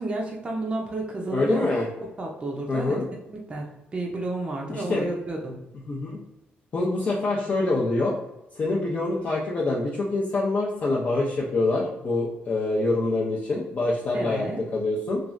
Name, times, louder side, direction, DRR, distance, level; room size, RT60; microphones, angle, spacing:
voice 1, 0.0-1.7 2.0-3.0 3.3-5.6 14.1-14.6, right 2 dB, 25° right, -1 dB, 0.5 m, -31 dB
voice 2, 1.3-1.9 2.7-3.0 4.7-5.1 5.9-6.2 6.7-8.1 8.6-14.5 14.7-15.2, left 2 dB, 40° left, -5 dB, 0.5 m, -25 dB
3.1 x 2.3 x 2.4 m, 0.92 s
cardioid pair, 130°, 4 cm